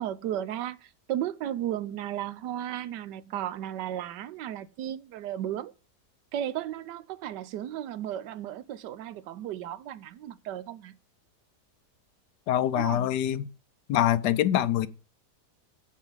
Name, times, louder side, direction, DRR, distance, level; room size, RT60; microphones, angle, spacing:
voice 1, 0.0-5.7 6.3-10.9 12.8-13.1, right 11 dB, 90° right, 1.3 m, -34 dB
voice 2, 12.5-13.5 13.9-14.9, left 12 dB, 80° left, 1.3 m, -24 dB
7.5 x 7.1 x 7.2 m
omnidirectional pair, 1.8 m